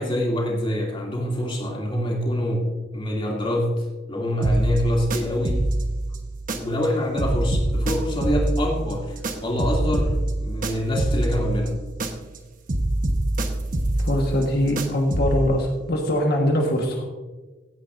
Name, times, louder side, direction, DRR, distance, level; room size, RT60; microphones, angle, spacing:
voice 1, 0.0-5.7 6.5-10.1 10.4-11.8, equal, 25° left, -1 dB, 2.5 m, -25 dB
sound 1, 4.4-6.9 7.2-12.4 12.7-15.5, right 1 dB, 45° right, 1.0 m, -26 dB
voice 2, 14.0-17.1, left 1 dB, 55° left, 1 dB, 1.4 m, -22 dB
16.0 x 9.8 x 2.6 m, 1.2 s
head